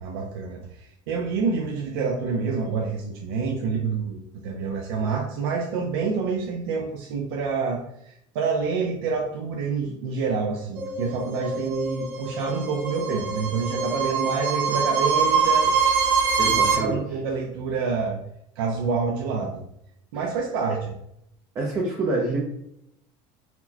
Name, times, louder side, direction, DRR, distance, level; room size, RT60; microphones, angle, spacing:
voice 1, 0.0-15.7 16.4-18.2 18.6-19.7 20.1-20.9, right 5 dB, 75° right, 0 dB, 0.5 m, -27 dB
sound 1, 10.7-16.7, right 5 dB, 45° right, 1.0 m, -24 dB
voice 2, 16.4-17.0 21.6-22.4, right 2 dB, 20° right, -3 dB, 0.5 m, -26 dB
4.1 x 2.1 x 2.7 m, 0.76 s
cardioid pair, 170°, 13 cm